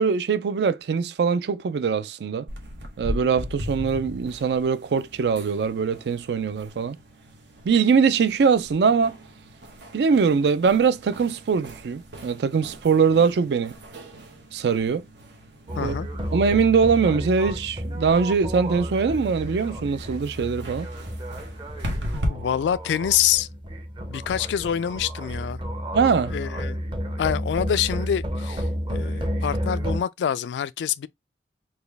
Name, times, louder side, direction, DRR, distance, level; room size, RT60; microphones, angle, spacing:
voice 1, 0.0-2.5 3.0-7.0 7.7-9.2 9.9-13.7 14.5-15.0 15.8-16.0 16.3-20.9 25.9-26.3, right 5 dB, 65° right, 0.4 m, -22 dB
sound 1, 2.5-22.3, equal, 85° right, 1.1 m, -38 dB
sound 2, 15.7-30.0, equal, 30° right, 0.6 m, -31 dB
voice 2, 15.8-16.1 22.3-23.5 24.1-25.6 26.3-26.8 27.2-31.1, left 9 dB, 80° left, 0.3 m, -26 dB
4.1 x 2.3 x 3.3 m
head